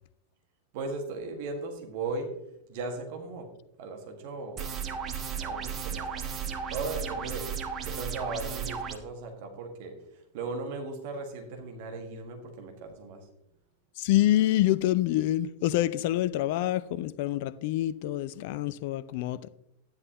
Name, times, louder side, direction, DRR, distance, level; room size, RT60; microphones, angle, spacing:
voice 1, 0.7-2.3 2.7-3.5 3.8-4.6 5.4-6.2 6.7-7.5 7.8-10.0 10.3-13.2, right 3 dB, 50° right, 1.8 m, -37 dB
sound 1, 4.6-9.0, right 7 dB, 25° right, 1.2 m, -34 dB
voice 2, 14.0-19.5, left 14 dB, 50° left, 0.5 m, -26 dB
13.0 x 10.5 x 3.0 m
figure-of-eight pair, 90°, 0 cm